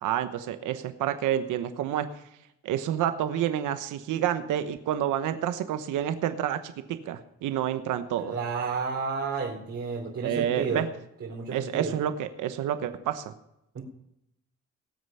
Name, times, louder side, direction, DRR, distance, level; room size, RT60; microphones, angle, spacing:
voice 1, 0.0-2.1 2.6-8.3 10.2-10.9 11.5-13.3, right 10 dB, 85° right, 10 dB, 1.0 m, -29 dB
voice 2, 8.2-10.8 11.2-11.9 13.7-13.8, right 5 dB, 50° right, 0 dB, 3.0 m, -31 dB
19.0 x 8.1 x 5.6 m, 0.81 s
cardioid pair, 90°, 30 cm